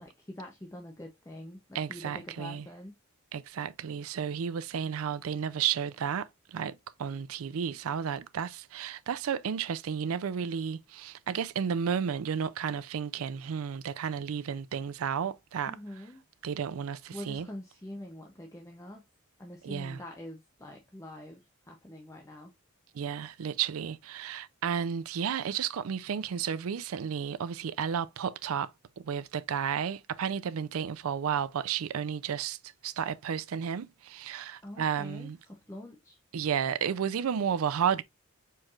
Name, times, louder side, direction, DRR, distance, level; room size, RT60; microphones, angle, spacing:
voice 1, 0.0-2.9 15.7-16.2 17.1-19.0 19.4-21.4 21.7-22.5 34.6-36.2, left 1 dB, 15° left, 0.6 m, -45 dB
voice 2, 1.7-2.7 3.3-15.8 16.4-17.5 19.6-20.0 22.9-28.7 29.0-32.6 32.8-35.4 36.3-38.0, right 7 dB, 80° right, 0.4 m, -32 dB
4.6 x 4.5 x 2.4 m
head